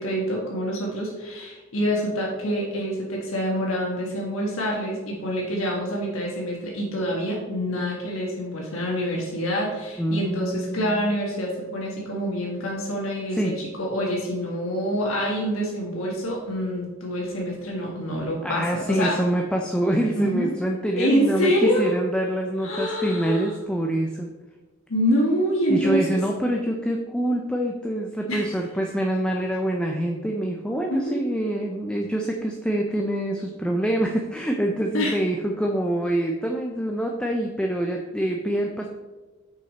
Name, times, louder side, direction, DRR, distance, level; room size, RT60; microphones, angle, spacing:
voice 1, 0.0-19.2 20.1-20.5 21.0-21.9 22.6-23.5 24.9-26.0 28.3-28.5 30.9-31.2 34.9-35.2, equal, 85° left, -2 dB, 1.4 m, -26 dB
voice 2, 10.0-11.1 13.3-13.6 18.4-24.3 25.7-38.9, right 1 dB, 5° left, 1 dB, 0.5 m, -25 dB
6.2 x 5.7 x 4.1 m, 1.2 s
head